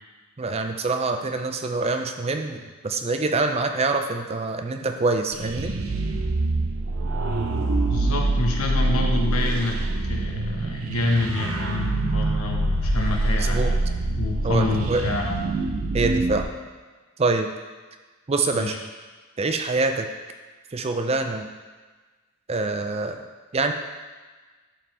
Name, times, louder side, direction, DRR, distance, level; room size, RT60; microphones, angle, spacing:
voice 1, 0.4-5.7 13.3-13.7 14.4-15.0 15.9-16.5 17.2-17.5 18.3-18.7 19.4-20.1 20.7-21.5 22.5-23.3 23.5-23.7, right 3 dB, 30° right, 6 dB, 0.5 m, -25 dB
sound 1, 5.3-16.4, right 2 dB, 75° right, 0.7 m, -25 dB
voice 2, 7.9-9.8 10.0-13.8 14.1-15.4 18.5-18.8, left 2 dB, 80° left, 0 dB, 1.2 m, -27 dB
11.0 x 5.1 x 3.4 m, 1.3 s
head